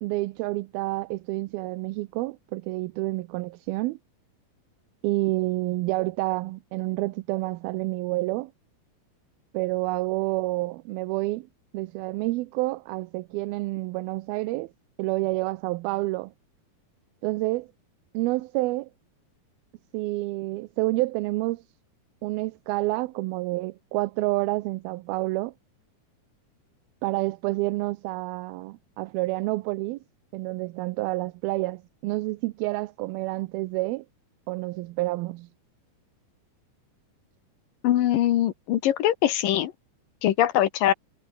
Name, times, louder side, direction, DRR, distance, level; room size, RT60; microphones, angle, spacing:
voice 1, 0.0-4.0 5.0-8.5 9.5-11.5 11.7-14.7 15.0-16.3 17.2-17.7 18.1-18.9 19.9-21.6 22.2-25.5 27.0-30.0 30.3-34.1 34.5-35.5, right 20 dB, 80° right, 2.5 m, -28 dB
voice 2, 37.8-39.7 40.2-40.9, left 12 dB, 70° left, 2.7 m, -22 dB
omnidirectional pair, 4.4 m